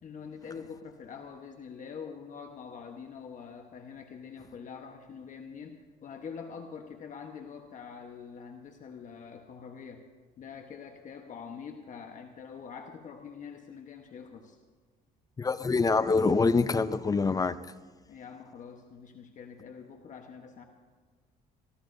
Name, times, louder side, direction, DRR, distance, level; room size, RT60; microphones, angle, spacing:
voice 1, 0.0-10.1 10.4-14.6 18.1-20.7, left 6 dB, 50° left, 4 dB, 1.2 m, -45 dB
voice 2, 15.4-17.6, left 4 dB, 20° left, 14 dB, 0.5 m, -25 dB
24.0 x 16.0 x 2.7 m, 1.4 s
cardioid pair, 110°, 17 cm